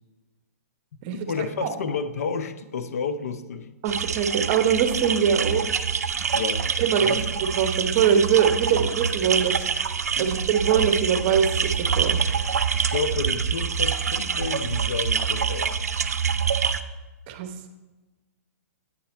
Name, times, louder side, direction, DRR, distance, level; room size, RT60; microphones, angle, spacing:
voice 1, 1.1-3.7 6.3-6.7 7.0-7.2 10.2-10.3 12.7-15.8, left 5 dB, 70° left, 11 dB, 0.6 m, -30 dB
voice 2, 3.8-5.7 6.8-7.1 7.4-9.7 10.2-12.2 17.3-17.5, right 7 dB, 40° right, 8 dB, 0.8 m, -22 dB
sound 1, 3.9-16.8, right 6 dB, 90° right, 0.5 m, -26 dB
8.5 x 5.6 x 4.3 m, 1.2 s
hypercardioid pair, 135°, 8 cm